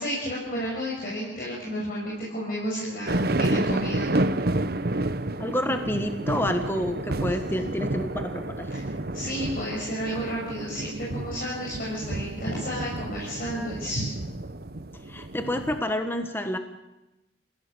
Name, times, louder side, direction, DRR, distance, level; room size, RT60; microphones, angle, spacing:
voice 1, 0.0-4.1 8.7-8.8 9.1-14.1, equal, 50° left, -5 dB, 6.9 m, -31 dB
sound 1, 3.1-15.8, right 2 dB, 55° right, 1.0 m, -30 dB
voice 2, 5.4-8.7 15.1-16.6, left 1 dB, 10° left, 7 dB, 1.4 m, -28 dB
30.0 x 16.5 x 7.0 m, 0.99 s
head